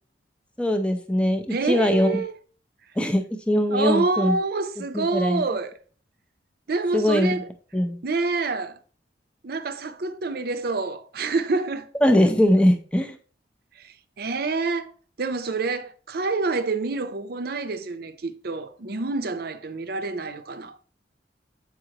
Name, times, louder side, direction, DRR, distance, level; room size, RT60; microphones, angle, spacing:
voice 1, 0.6-2.2 3.0-4.4 4.9-5.4 6.9-7.4 7.7-8.0 12.0-13.2, left 1 dB, 5° left, 0.5 m, -21 dB
voice 2, 1.5-2.3 3.7-5.8 6.7-7.5 8.0-8.8 9.4-11.9 13.8-14.9 15.2-20.8, right 3 dB, 55° right, 0.6 m, -27 dB
7.7 x 4.8 x 2.9 m
head